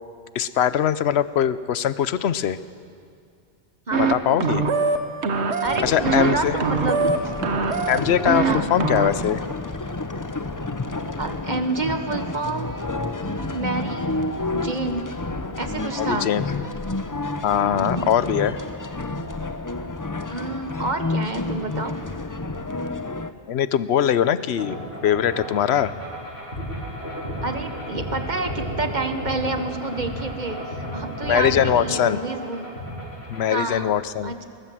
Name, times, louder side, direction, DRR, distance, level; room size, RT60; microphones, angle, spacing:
voice 1, 0.3-2.6 4.1-4.6 5.8-6.6 7.9-9.4 16.1-16.4 17.4-18.6 23.5-24.8 25.0-25.9 31.3-32.2 33.3-34.3, left 9 dB, 70° left, 15 dB, 0.9 m, -21 dB
voice 2, 3.9-4.6 5.6-7.3 8.4-8.7 11.2-12.9 13.2-14.1 14.5-15.1 15.6-16.3 17.7-18.1 20.3-21.9 27.4-32.7 33.5-34.0 34.2-34.5, right 3 dB, 40° right, 7 dB, 1.4 m, -29 dB
sound 1, 3.9-4.1 4.4-5.0 5.2-6.3 6.6-7.2 7.4-8.5 8.8-9.1, right 5 dB, 70° right, 1.5 m, -23 dB
sound 2, 5.6-23.3, left 2 dB, 20° left, 0.6 m, -30 dB
sound 3, 24.6-33.5, equal, 55° left, 5.5 m, -32 dB
20.5 x 19.5 x 7.6 m, 2.3 s
omnidirectional pair, 1.2 m